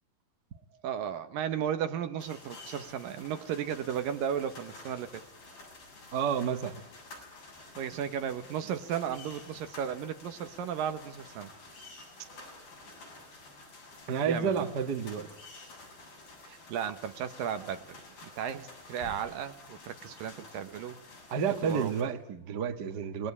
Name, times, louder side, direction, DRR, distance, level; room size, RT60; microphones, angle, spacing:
voice 1, 0.8-5.2 7.8-11.5 12.3-12.5 14.3-14.7 16.5-21.0 21.6-21.9, right 9 dB, 80° right, 9 dB, 3.1 m, -35 dB
sound 1, 2.2-22.0, left 2 dB, 85° left, 8.9 m, -50 dB
voice 2, 6.1-6.8 14.1-15.3 21.3-23.3, right 7 dB, 45° right, 7 dB, 1.5 m, -30 dB
28.0 x 21.0 x 9.8 m, 0.81 s
omnidirectional pair, 4.0 m